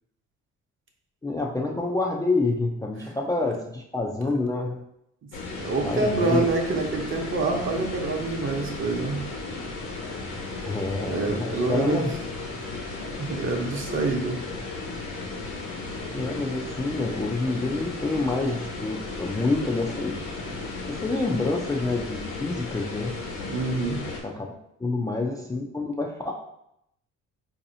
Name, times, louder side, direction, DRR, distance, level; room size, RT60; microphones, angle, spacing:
voice 1, 1.2-4.8 5.8-6.5 10.5-12.1 16.1-20.3 20.9-23.1 24.2-24.5 24.8-26.3, left 3 dB, 10° left, -1 dB, 0.3 m, -27 dB
sound 1, 5.3-24.2, left 3 dB, 80° left, 1.1 m, -35 dB
voice 2, 5.6-9.2 11.1-12.1 13.2-14.4 23.4-24.0, right 3 dB, 40° right, 1 dB, 0.8 m, -26 dB
4.0 x 2.7 x 2.6 m, 0.79 s
cardioid pair, 90°, 30 cm